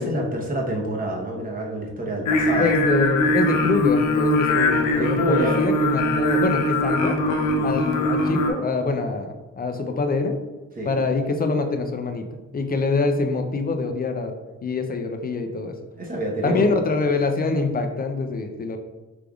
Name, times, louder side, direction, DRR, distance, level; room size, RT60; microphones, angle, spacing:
voice 1, 0.0-2.7 4.9-5.6 7.5-7.9 10.8-10.9 16.0-16.7, right 1 dB, 30° right, 0 dB, 1.0 m, -27 dB
Singing, 2.3-8.5, left 1 dB, 90° left, 0.7 m, -21 dB
voice 2, 2.6-7.2 7.6-10.4 10.8-12.2 12.5-14.3 14.6-15.8 16.4-18.8, left 3 dB, 30° left, 6 dB, 0.5 m, -25 dB
5.0 x 3.3 x 2.4 m, 1.2 s
cardioid pair, 90°, 30 cm